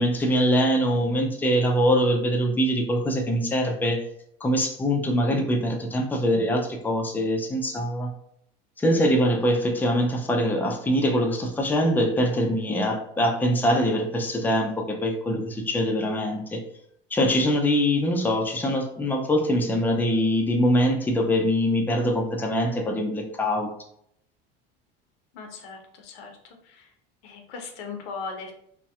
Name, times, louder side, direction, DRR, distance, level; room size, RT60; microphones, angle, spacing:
voice 1, 0.0-4.0 4.4-8.1 8.8-16.6 17.1-23.7, equal, 5° left, 1 dB, 0.3 m, -23 dB
voice 2, 25.3-26.9 27.2-28.5, left 4 dB, 80° left, 3 dB, 0.6 m, -38 dB
2.6 x 2.1 x 2.3 m, 0.70 s
supercardioid pair, 95°, 30 cm